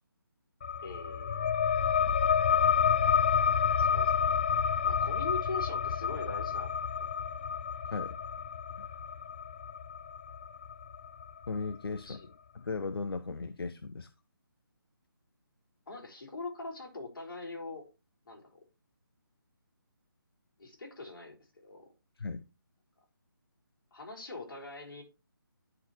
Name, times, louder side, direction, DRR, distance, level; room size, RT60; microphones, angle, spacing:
sound 1, 0.6-11.7, left 7 dB, 30° left, 0.4 m, -29 dB
voice 1, 0.8-1.5 3.2-3.4 3.8-4.1 4.8-6.9 12.0-12.3 15.9-17.8 18.3-18.6 20.6-21.9 23.9-25.0, left 3 dB, 60° left, 4.2 m, -42 dB
voice 2, 11.5-12.2 12.5-14.1 22.2-22.4, left 4 dB, 85° left, 0.7 m, -37 dB
11.0 x 5.8 x 3.1 m
figure-of-eight pair, 160°, 12 cm